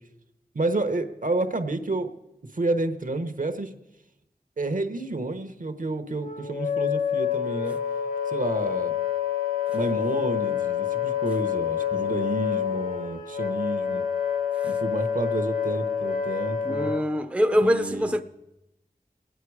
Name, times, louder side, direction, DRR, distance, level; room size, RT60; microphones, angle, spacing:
voice 1, 0.5-2.1 2.5-3.7 4.6-7.8 8.3-8.9 9.7-14.0 14.6-16.9 17.6-18.1, right 2 dB, 60° right, 1.0 m, -30 dB
Wind instrument woodwind instrument, 6.2-17.0, left 9 dB, 65° left, 1.2 m, -27 dB
voice 2, 16.6-18.2, equal, 10° right, 0.6 m, -24 dB
21.0 x 9.2 x 4.8 m
wide cardioid pair, 65°, 16 cm